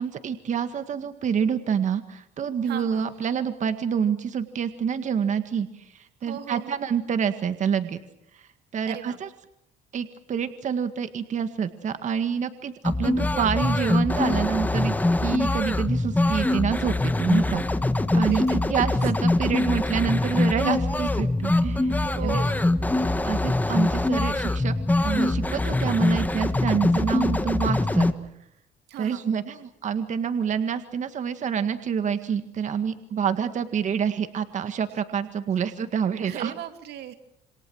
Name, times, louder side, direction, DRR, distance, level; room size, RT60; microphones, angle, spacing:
voice 1, 0.0-8.0 8.4-9.3 9.9-15.0 15.2-17.6 18.1-22.4 23.2-24.7 25.0-28.1 29.0-36.5, right 7 dB, 45° right, 9 dB, 1.9 m, -27 dB
voice 2, 2.6-3.1 6.2-6.7 8.9-9.2 18.1-18.6 22.0-22.7 28.9-29.2 36.2-37.1, right 11 dB, 80° right, 8 dB, 2.6 m, -37 dB
sound 1, 12.8-28.1, left 2 dB, 10° left, 1.5 m, -23 dB
28.0 x 26.5 x 6.4 m, 0.79 s
cardioid pair, 110°, 17 cm